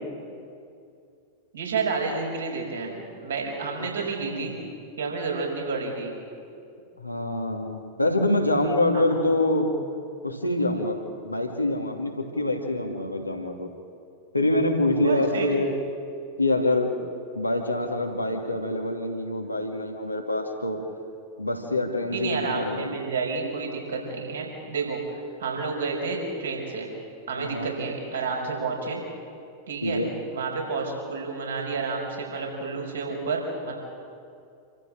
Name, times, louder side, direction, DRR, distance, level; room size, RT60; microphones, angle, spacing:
voice 1, 1.5-4.5 5.0-6.1 8.9-9.0 15.0-15.5 22.1-26.9 27.3-29.0 29.7-30.0 30.3-33.7, right 4 dB, 65° right, 0 dB, 5.6 m, -30 dB
voice 2, 4.2-4.6 7.0-9.7 10.2-11.0 11.2-13.7 14.3-15.7 16.4-17.0 17.3-20.8 21.4-23.0 27.4-27.7 29.8-30.1, left 1 dB, 85° left, 2 dB, 2.6 m, -25 dB
27.5 x 14.0 x 7.7 m, 2.4 s
figure-of-eight pair, 90°, 0 cm